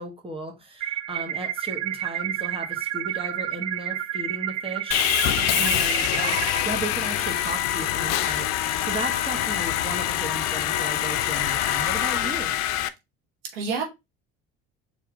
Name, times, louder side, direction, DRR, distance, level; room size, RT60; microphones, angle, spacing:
voice 1, 0.0-12.5, right 2 dB, 20° right, 2 dB, 1.5 m, -35 dB
sound 1, 0.8-6.6, right 12 dB, 60° right, 0.5 m, -30 dB
Sawing, 4.9-12.9, left 12 dB, 65° left, 0.5 m, -25 dB
voice 2, 5.4-6.0 13.5-13.8, right 5 dB, 90° right, 3 dB, 1.1 m, -31 dB
4.3 x 2.9 x 3.7 m, 0.23 s
supercardioid pair, 75°, 29 cm